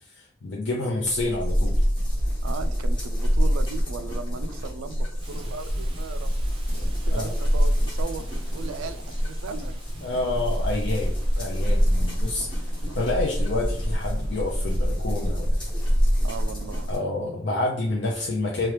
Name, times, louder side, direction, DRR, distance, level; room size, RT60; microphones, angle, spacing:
voice 1, 0.1-1.8 7.1-7.3 10.0-12.7 12.9-15.8 16.9-18.7, left 2 dB, 65° left, -2 dB, 0.5 m, -28 dB
sound 1, 1.1-17.0, equal, 25° left, 1.0 m, -26 dB
voice 2, 2.4-6.3 6.7-9.8 12.0-12.2 12.9-13.0 16.2-16.9, right 5 dB, 85° right, 11 dB, 0.3 m, -38 dB
Rain, 5.2-14.9, equal, 25° right, 0.5 m, -35 dB
2.9 x 2.3 x 3.2 m, 0.65 s
head